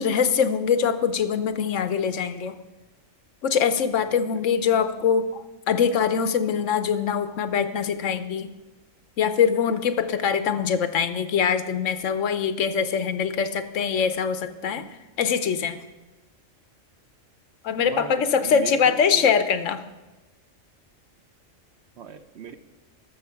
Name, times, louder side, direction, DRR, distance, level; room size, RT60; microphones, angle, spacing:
voice 1, 0.0-2.6 3.4-8.5 9.2-14.9 15.2-15.8 17.6-19.8, left 7 dB, 70° left, 11 dB, 1.1 m, -23 dB
voice 2, 4.1-4.4 17.8-19.4 22.0-22.6, right 6 dB, 60° right, 10 dB, 0.9 m, -38 dB
13.5 x 6.7 x 5.7 m, 1.1 s
omnidirectional pair, 1.4 m